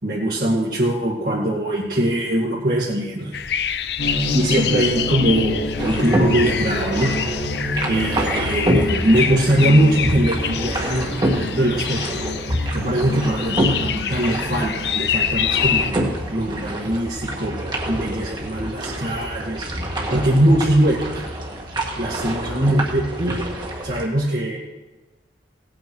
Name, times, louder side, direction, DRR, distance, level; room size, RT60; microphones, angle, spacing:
voice 1, 0.0-3.4 4.3-7.1 7.4-7.5 7.9-12.0 12.7-16.0 16.3-17.5 17.9-19.7 20.1-21.2 22.0-23.4 23.8-24.6, right 1 dB, 55° right, -7 dB, 2.1 m, -21 dB
sound 1, 3.3-15.9, left 8 dB, 65° left, 0.6 m, -27 dB
sound 2, 4.0-16.8, equal, 85° left, 2.5 m, -30 dB
sound 3, 5.8-24.0, right 1 dB, 25° right, 1.8 m, -27 dB
17.5 x 9.0 x 4.7 m, 1.1 s
head